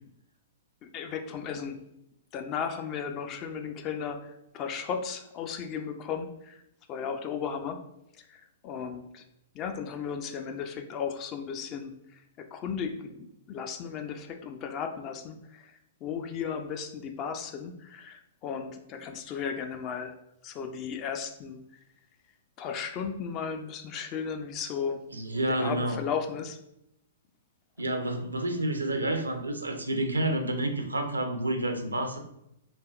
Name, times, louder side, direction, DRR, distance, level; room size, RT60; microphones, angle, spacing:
voice 1, 0.8-1.8 2.3-6.6 6.9-7.8 8.2-9.2 9.5-15.7 16.0-20.2 20.4-21.6 22.6-25.0 25.5-26.6, left 6 dB, 30° left, 6 dB, 0.3 m, -35 dB
voice 2, 25.1-26.0 27.8-32.2, right 1 dB, 85° right, 5 dB, 0.4 m, -29 dB
3.3 x 2.3 x 2.4 m, 0.81 s
figure-of-eight pair, 115°, 0 cm